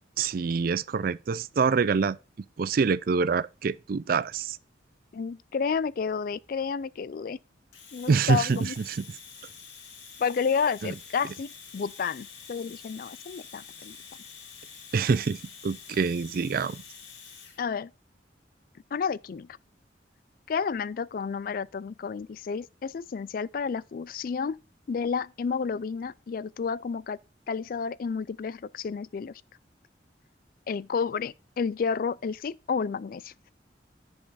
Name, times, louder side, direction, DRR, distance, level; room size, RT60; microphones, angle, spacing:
voice 1, 0.2-2.2 2.6-4.6 8.1-9.0 10.8-10.9 14.9-16.8, right 5 dB, 50° right, 0.4 m, -26 dB
voice 2, 5.1-7.4 7.9-8.7 10.2-14.0 17.6-17.9 18.9-19.5 20.5-24.6 24.9-27.2 27.5-29.3 30.7-33.3, left 5 dB, 50° left, 0.3 m, -31 dB
Domestic sounds home sounds, 7.7-17.6, left 6 dB, 80° left, 2.4 m, -47 dB
10.0 x 5.5 x 4.1 m
head